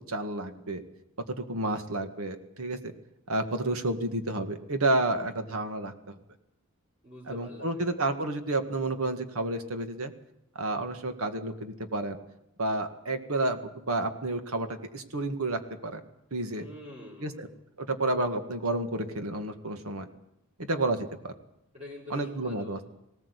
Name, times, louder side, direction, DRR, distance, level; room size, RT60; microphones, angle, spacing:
voice 1, 0.1-0.8 1.3-2.9 3.3-6.2 7.3-10.1 10.6-12.2 12.6-16.0 16.3-16.7 17.2-17.5 17.8-20.1 20.6-21.3 22.1-22.8, right 2 dB, 85° right, 7 dB, 2.0 m, -30 dB
voice 2, 7.0-8.0 16.5-17.4 21.7-22.8, left 2 dB, 30° right, -5 dB, 3.9 m, -46 dB
19.0 x 18.0 x 8.3 m, 0.84 s
head